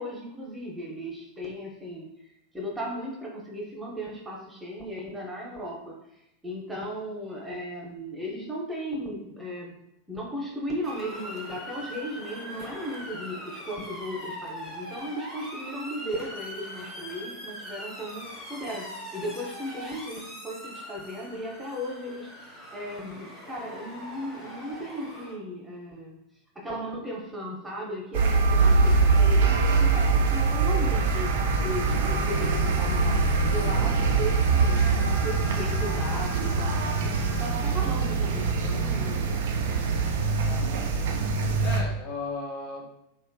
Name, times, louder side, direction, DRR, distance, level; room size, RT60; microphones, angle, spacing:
voice 1, 0.0-2.1 2.5-6.0 6.4-9.7 10.1-22.3 22.7-26.2 26.6-31.4 31.6-36.7 37.0-39.3, equal, 10° right, -3 dB, 0.7 m, -36 dB
Motor vehicle (road) / Siren, 10.8-25.3, equal, 10° left, 1.0 m, -41 dB
sound 1, 28.1-41.8, right 4 dB, 55° right, 0.4 m, -23 dB
voice 2, 40.4-43.0, left 3 dB, 40° left, -1 dB, 0.6 m, -37 dB
3.2 x 2.4 x 2.2 m, 0.85 s
figure-of-eight pair, 90°, 0 cm